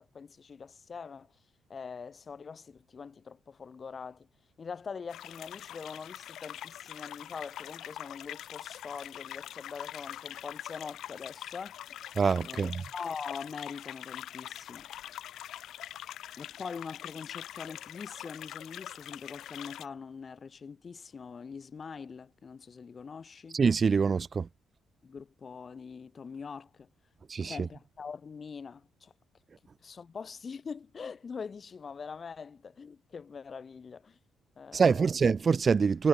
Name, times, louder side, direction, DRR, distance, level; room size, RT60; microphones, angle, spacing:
voice 1, 0.0-1.3 1.7-4.3 4.6-12.0 12.4-15.4 16.4-23.6 25.0-26.9 27.4-29.1 29.8-34.2 34.6-35.0, left 5 dB, 40° left, 6.0 m, -43 dB
sound 1, 5.1-19.9, left 12 dB, 75° left, 0.7 m, -44 dB
voice 2, 12.2-12.8 23.5-24.5 27.3-27.7 34.7-36.1, right 5 dB, 40° right, 0.7 m, -25 dB
cardioid pair, 90°, 0 cm